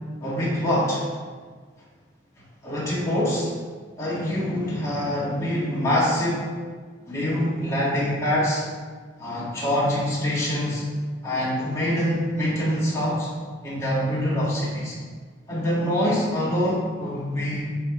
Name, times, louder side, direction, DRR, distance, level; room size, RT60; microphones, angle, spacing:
voice 1, 0.2-1.1 2.6-3.5 4.0-6.5 7.1-8.6 9.2-10.8 11.2-13.3 13.6-15.0 15.5-17.7, equal, 15° left, -8 dB, 2.0 m, -25 dB
9.0 x 3.6 x 3.8 m, 1.5 s
head